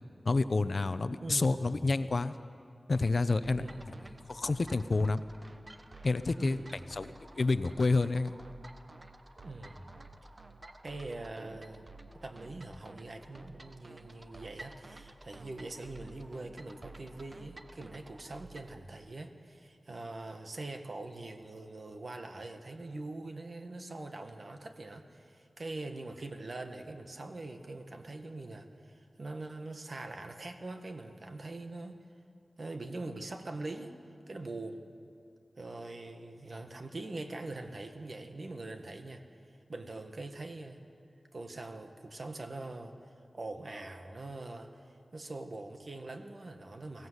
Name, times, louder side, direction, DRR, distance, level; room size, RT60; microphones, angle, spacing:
voice 1, 0.2-2.3 2.9-3.6 4.3-5.2 6.0-6.6 6.9-8.3, left 3 dB, 55° left, 13 dB, 0.7 m, -29 dB
voice 2, 1.2-1.7 3.6-4.1 6.4-6.8 9.4-9.9 10.8-32.0 32.6-33.9 34.3-34.8 35.5-39.2 39.7-40.8 41.3-42.9 43.3-47.1, right 2 dB, 50° right, 6 dB, 1.6 m, -43 dB
sound 1, 2.9-18.8, right 2 dB, 30° right, 1.0 m, -52 dB
23.5 x 16.5 x 8.1 m, 2.4 s
wide cardioid pair, 90°, 0 cm